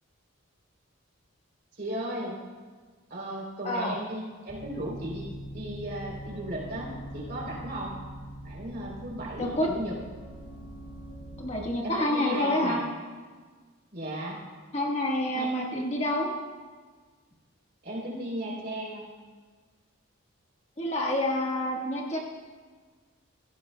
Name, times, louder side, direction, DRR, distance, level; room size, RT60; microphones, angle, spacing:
voice 1, 1.7-2.3 3.1-8.0 8.4-10.0 11.8-12.9 13.9-14.4 15.3-15.6 17.8-19.1, right 1 dB, 50° right, -3 dB, 3.4 m, -36 dB
sound 1, 4.5-11.6, right 1 dB, 90° left, 2.0 m, -42 dB
voice 2, 11.4-12.8 14.7-16.3 20.8-22.2, left 1 dB, 30° left, -2 dB, 1.5 m, -28 dB
17.5 x 14.5 x 2.2 m, 1.5 s
head